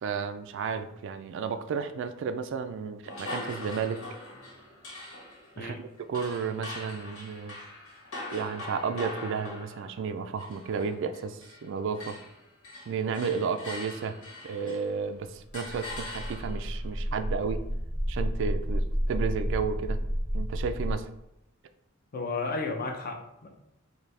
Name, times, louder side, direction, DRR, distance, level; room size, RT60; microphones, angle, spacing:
voice 1, 0.0-4.0 5.6-7.6 8.3-12.2 12.9-14.1 14.4-17.6 18.1-20.0 20.3-21.0, right 5 dB, 60° right, 10 dB, 0.3 m, -32 dB
sound 1, 3.0-11.7 11.9-15.0 15.5-16.7, left 2 dB, 75° left, 1.4 m, -42 dB
sound 2, 15.5-20.9, equal, 5° right, 0.7 m, -31 dB
voice 2, 22.1-23.5, left 3 dB, 45° left, 2 dB, 0.6 m, -33 dB
4.0 x 2.7 x 3.2 m, 0.86 s
head